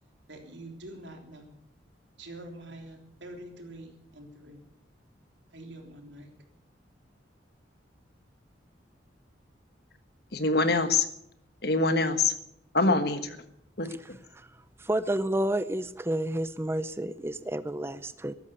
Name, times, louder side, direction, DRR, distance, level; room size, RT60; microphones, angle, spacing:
voice 1, 0.3-1.6 2.2-4.6 5.5-6.3, right 1 dB, 75° right, 3.5 m, -45 dB
voice 2, 10.3-11.1 11.6-12.3 12.7-13.4 13.8-13.9, left 3 dB, 55° left, 1.4 m, -24 dB
voice 3, 13.8-14.5 14.8-18.3, right 1 dB, 15° right, 0.6 m, -31 dB
14.0 x 12.0 x 8.3 m
head